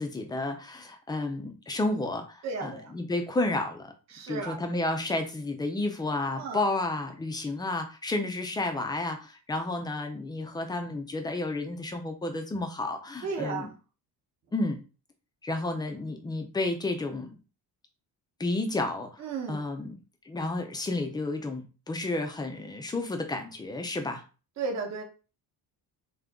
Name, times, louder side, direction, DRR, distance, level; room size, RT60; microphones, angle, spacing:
voice 1, 0.0-3.9 4.3-13.7 14.5-14.8 15.4-17.3 18.4-19.2 19.5-20.0 20.3-24.2, left 2 dB, 10° left, 5 dB, 0.3 m, -31 dB
voice 2, 2.4-2.9 4.1-4.6 6.4-6.6 13.2-13.7 19.2-19.6 24.6-25.0, right 4 dB, 40° right, 2 dB, 0.9 m, -34 dB
3.7 x 2.8 x 3.4 m, 0.33 s
cardioid pair, 170°, 42 cm